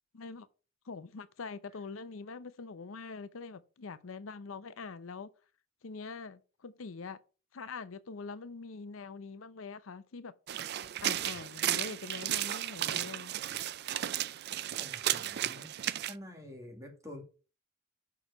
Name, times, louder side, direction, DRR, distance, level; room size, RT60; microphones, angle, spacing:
voice 1, 0.1-0.5 0.9-5.3 5.8-7.2 7.5-10.3 11.0-13.4, left 4 dB, 85° left, 0.6 m, -44 dB
sound 1, 10.5-16.1, right 12 dB, 55° right, 0.4 m, -34 dB
voice 2, 14.8-15.7 16.1-17.2, left 1 dB, 15° right, 2.1 m, -47 dB
5.9 x 4.7 x 6.5 m
head